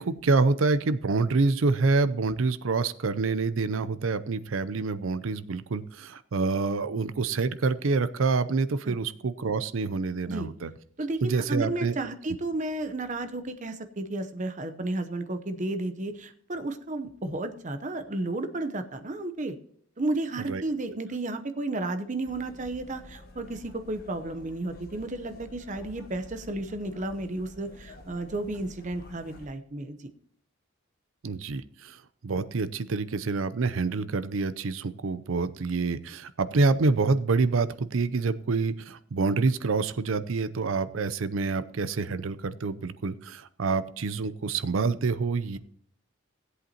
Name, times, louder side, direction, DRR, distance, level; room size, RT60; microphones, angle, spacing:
voice 1, 0.0-10.7 11.2-12.0 20.5-20.6 31.2-32.0 32.2-45.6, right 4 dB, 75° right, 14 dB, 0.6 m, -27 dB
voice 2, 11.0-19.5 20.0-30.0, right 2 dB, 35° right, 8 dB, 0.8 m, -32 dB
sound 1, 22.2-29.5, left 1 dB, 45° left, 1.4 m, -49 dB
16.5 x 8.1 x 2.9 m, 0.65 s
head